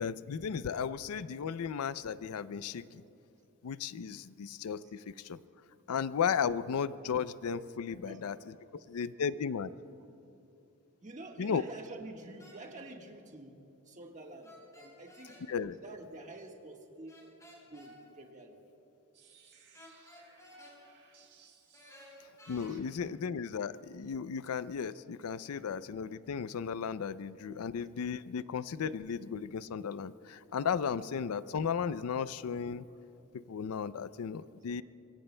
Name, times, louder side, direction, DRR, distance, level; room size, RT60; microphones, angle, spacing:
voice 1, 0.0-3.0 3.6-5.4 5.9-8.4 8.7-9.7 11.4-11.6 15.5-15.7 22.5-32.9 33.3-34.8, left 6 dB, 85° left, 16 dB, 0.4 m, -35 dB
voice 2, 7.9-8.3 11.0-13.5 13.9-15.4 15.8-17.1 17.7-18.6 22.7-22.8, right 2 dB, 35° right, 2 dB, 1.4 m, -48 dB
sound 1, 12.4-12.6 14.4-15.4 17.1-17.9 19.7-20.8 21.7-22.7, left 1 dB, 15° left, 4.4 m, -54 dB
sound 2, 19.1-22.9, right 6 dB, 60° right, 3.3 m, -63 dB
25.5 x 23.5 x 2.2 m, 2.8 s
head